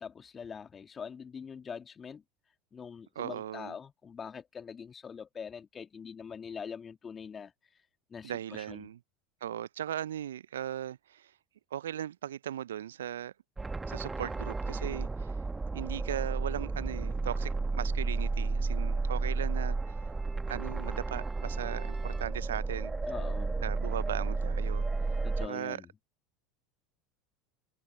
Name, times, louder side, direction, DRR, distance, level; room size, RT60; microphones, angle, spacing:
voice 1, 0.0-2.2 2.7-7.8 8.1-8.9 23.1-23.6 25.2-25.9, left 6 dB, 25° left, 2.7 m, -43 dB
voice 2, 3.2-3.7 8.2-9.0 9.4-11.3 11.7-13.3 13.9-15.1 15.7-19.9 20.5-22.9 23.6-24.9 25.4-25.8, right 11 dB, 75° right, 0.7 m, -38 dB
sound 1, 13.6-25.5, right 3 dB, 15° right, 1.6 m, -32 dB
figure-of-eight pair, 75°, 0 cm